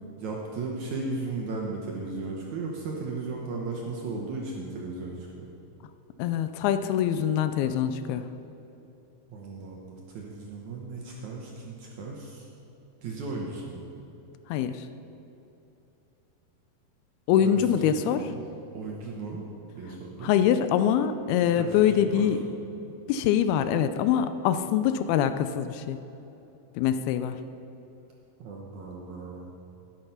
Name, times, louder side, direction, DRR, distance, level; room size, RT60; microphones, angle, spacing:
voice 1, 0.2-5.5 9.3-12.5 13.0-13.9 17.3-17.6 17.9-18.5 18.7-19.4 19.8-20.3 21.6-22.3 28.4-29.5, right 3 dB, 65° right, -2 dB, 2.0 m, -36 dB
voice 2, 6.2-8.2 14.5-14.8 17.3-18.3 20.2-22.4 23.1-26.0 26.8-27.4, left 9 dB, 85° left, 10 dB, 2.4 m, -24 dB
12.0 x 9.2 x 5.7 m, 3.0 s
omnidirectional pair, 4.5 m